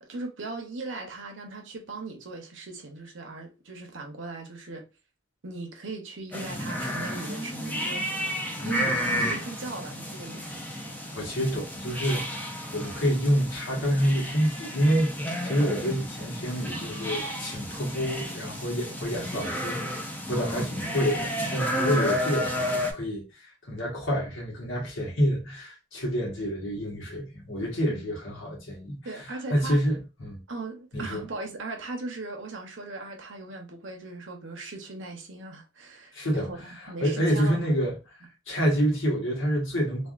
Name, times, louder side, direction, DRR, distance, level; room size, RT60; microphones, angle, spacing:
voice 1, 0.0-4.8 5.4-10.6 27.9-28.0 29.0-29.8 30.5-37.8, right 3 dB, 75° right, 0.8 m, -39 dB
sound 1, 6.3-22.9, equal, 10° left, 0.5 m, -32 dB
voice 2, 11.1-23.2 23.7-30.4 30.9-31.2 36.1-37.9 38.5-40.1, equal, 80° left, 1.3 m, -28 dB
3.4 x 2.4 x 2.4 m
head